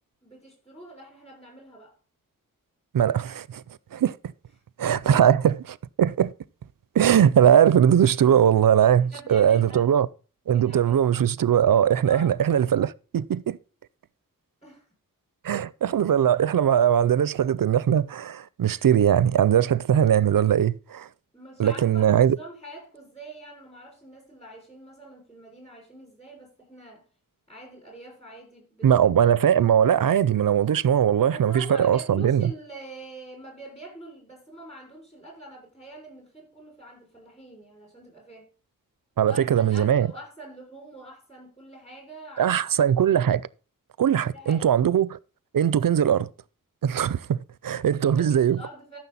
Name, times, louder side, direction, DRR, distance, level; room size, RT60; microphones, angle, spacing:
voice 1, 0.2-1.9 9.0-9.9 10.5-11.0 12.0-12.3 14.6-14.8 21.3-27.0 27.5-28.9 31.3-38.5 39.2-42.6 44.3-44.8 48.0-49.0, right 1 dB, 20° left, 6.2 m, -44 dB
voice 2, 2.9-3.6 3.9-4.2 4.8-6.3 6.9-10.1 10.5-13.6 15.4-21.1 21.6-22.4 28.8-32.5 39.2-40.1 42.4-43.5 44.0-45.2 45.5-46.3 46.8-48.6, right 9 dB, 80° right, 0.5 m, -20 dB
13.5 x 6.3 x 4.1 m
wide cardioid pair, 80°, 34 cm